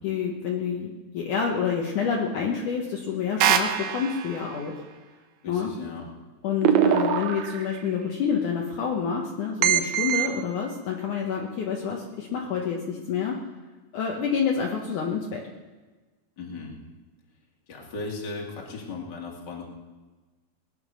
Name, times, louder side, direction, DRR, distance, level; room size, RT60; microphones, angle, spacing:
voice 1, 0.0-4.8 5.5-5.7 6.4-13.4 13.9-15.4, left 6 dB, 65° left, -1 dB, 2.4 m, -28 dB
sound 1, 3.4-4.4 6.6-7.8 9.6-10.3, right 9 dB, 70° right, 1.8 m, -23 dB
voice 2, 5.4-6.0 16.4-16.8 17.7-19.6, left 3 dB, 30° left, -1 dB, 2.6 m, -36 dB
20.0 x 9.7 x 6.3 m, 1.3 s
omnidirectional pair, 4.2 m